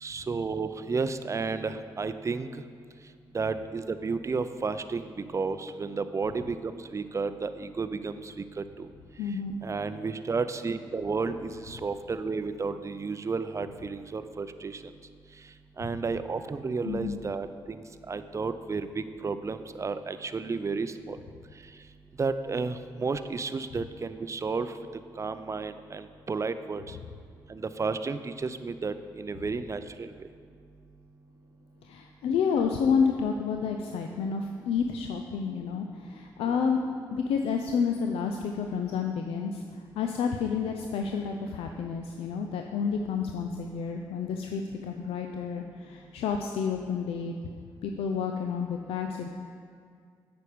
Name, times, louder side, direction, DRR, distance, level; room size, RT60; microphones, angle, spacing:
voice 1, 0.0-2.5 3.3-8.9 9.6-14.8 15.8-21.2 22.2-24.7 25.2-26.8 27.5-30.1 36.5-36.6, right 4 dB, 30° right, 11 dB, 0.4 m, -32 dB
voice 2, 9.2-9.6 16.8-17.2 31.8-36.8 37.1-47.3 47.8-49.3, left 6 dB, 75° left, 4 dB, 0.4 m, -30 dB
8.4 x 5.2 x 5.0 m, 2.2 s
hypercardioid pair, 45°, 10 cm